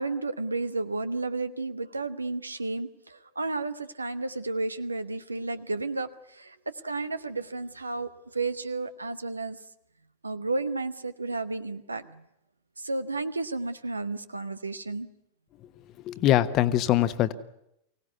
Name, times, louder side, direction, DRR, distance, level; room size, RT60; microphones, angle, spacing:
voice 1, 0.0-9.6 10.2-12.3 12.8-15.1, right 3 dB, 80° right, 13 dB, 1.0 m, -32 dB
voice 2, 16.1-17.3, left 13 dB, 35° left, 13 dB, 1.2 m, -22 dB
24.0 x 17.5 x 9.4 m, 0.82 s
figure-of-eight pair, 90°, 0 cm